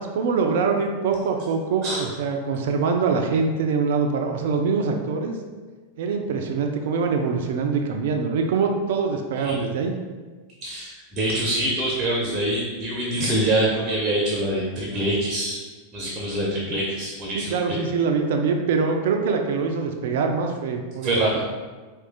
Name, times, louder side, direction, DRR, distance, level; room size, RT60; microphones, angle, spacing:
voice 1, 0.0-5.4 6.0-10.0 17.3-21.4, right 5 dB, 55° right, 4 dB, 0.4 m, -24 dB
voice 2, 10.6-15.6 15.9-17.8 21.0-21.4, right 1 dB, 20° right, -4 dB, 0.8 m, -25 dB
4.6 x 2.4 x 3.7 m, 1.4 s
figure-of-eight pair, 90°, 0 cm